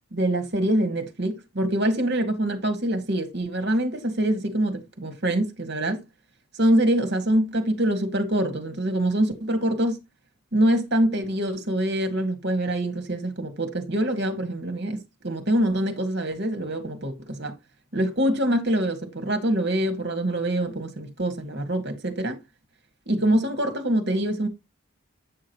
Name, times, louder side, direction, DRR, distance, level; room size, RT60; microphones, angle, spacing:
voice 1, 0.1-6.0 6.5-10.0 10.5-17.6 17.9-22.4 23.1-24.5, right 1 dB, 55° right, 1.9 m, -25 dB
8.7 x 6.4 x 3.0 m
head